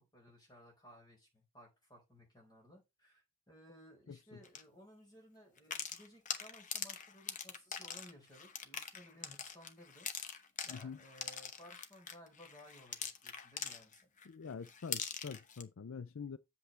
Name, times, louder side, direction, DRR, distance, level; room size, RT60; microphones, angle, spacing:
voice 1, 0.0-10.1 10.6-14.1, equal, 20° left, 4.4 m, -59 dB
sound 1, 4.4-4.6 5.6-14.3 14.6-15.6, left 7 dB, 40° left, 0.9 m, -43 dB
voice 2, 10.7-11.0 14.3-16.4, left 5 dB, 70° left, 0.5 m, -45 dB
8.1 x 7.0 x 3.2 m
head